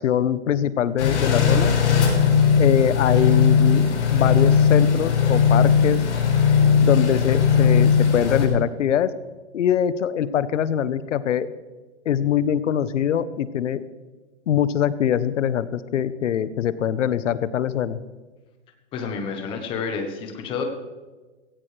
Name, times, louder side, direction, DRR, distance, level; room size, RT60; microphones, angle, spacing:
voice 1, 0.0-1.7 2.6-6.0 6.8-9.1 9.5-11.5 12.0-13.8 14.5-18.0, left 9 dB, 85° left, 15 dB, 1.0 m, -23 dB
sound 1, 1.0-8.5, left 6 dB, 70° left, 5.6 m, -18 dB
voice 2, 18.9-20.6, left 5 dB, 15° left, 5 dB, 1.1 m, -29 dB
17.0 x 16.5 x 3.4 m, 1.3 s
hypercardioid pair, 170°, 36 cm